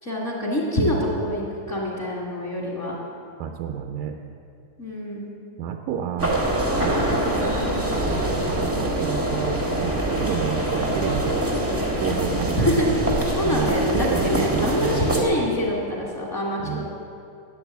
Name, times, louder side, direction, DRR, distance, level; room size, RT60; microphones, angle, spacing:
voice 1, 0.0-3.0 4.8-5.3 6.9-7.2 7.6-7.9 12.6-12.8 13.4-16.9, left 1 dB, 25° left, -4 dB, 2.2 m, -26 dB
voice 2, 3.4-4.2 5.6-6.4 6.8-7.2 8.0-11.4 12.0-12.6 13.0-13.2 13.4-15.0 16.6-16.9, right 8 dB, 85° right, 4 dB, 2.1 m, -30 dB
sound 1, 6.2-15.2, right 1 dB, 10° right, 1.0 m, -24 dB
12.0 x 9.2 x 8.1 m, 2.5 s
omnidirectional pair, 3.4 m